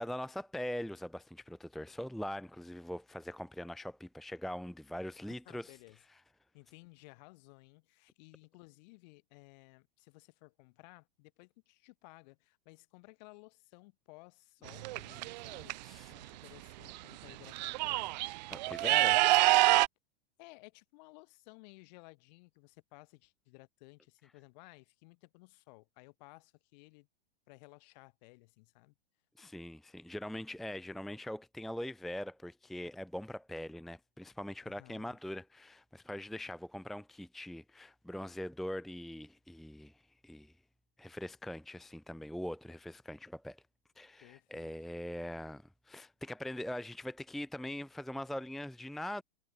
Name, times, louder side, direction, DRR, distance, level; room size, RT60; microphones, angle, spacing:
voice 1, 0.0-5.7 15.8-16.1 18.5-19.3 29.4-40.5 41.0-43.6 44.0-49.2, left 1 dB, ahead, 0.7 m, -42 dB
voice 2, 5.5-6.0 6.5-15.8 16.1-18.2 20.4-27.1 27.5-28.9 34.6-35.2 44.2-44.7, left 26 dB, 45° left, 7.1 m, -57 dB
sound 1, 14.7-15.7 16.9-17.0 17.3-19.9, right 20 dB, 50° right, 0.7 m, -27 dB
hypercardioid pair, 145°, 29 cm